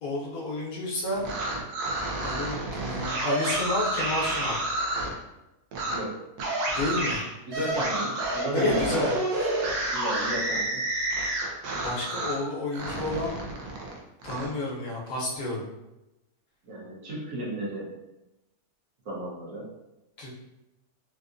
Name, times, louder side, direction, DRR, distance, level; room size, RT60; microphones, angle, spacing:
voice 1, 0.0-1.2 2.2-4.6 6.7-7.2 7.5-7.6 8.5-9.1 11.8-13.4 14.2-15.6 20.2-20.4, left 2 dB, 70° left, -4 dB, 1.3 m, -30 dB
sound 1, 1.1-5.1 5.7-6.0 6.4-12.4 12.7-14.5, right 2 dB, 85° right, 1.2 m, -29 dB
voice 2, 7.5-9.0 9.9-10.8 16.6-17.9 19.0-19.6, equal, 60° right, -6 dB, 1.3 m, -32 dB
3.7 x 2.6 x 2.5 m, 0.95 s
omnidirectional pair, 1.6 m